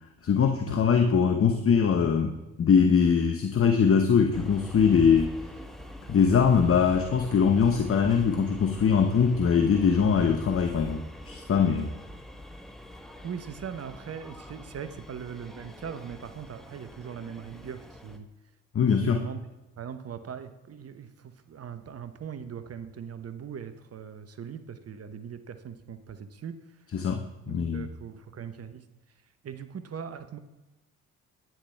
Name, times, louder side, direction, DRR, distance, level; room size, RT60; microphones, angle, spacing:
voice 1, 0.2-5.3 6.1-11.9 18.7-19.2 26.9-27.9, left 6 dB, 35° left, 5 dB, 0.9 m, -22 dB
sound 1, 4.3-18.2, left 1 dB, ahead, 1.1 m, -44 dB
voice 2, 13.2-18.3 19.0-19.4 19.8-26.6 27.5-28.8 29.4-30.4, right 7 dB, 40° right, 10 dB, 1.0 m, -40 dB
10.5 x 9.5 x 3.4 m, 1.0 s
hypercardioid pair, 50°, 38 cm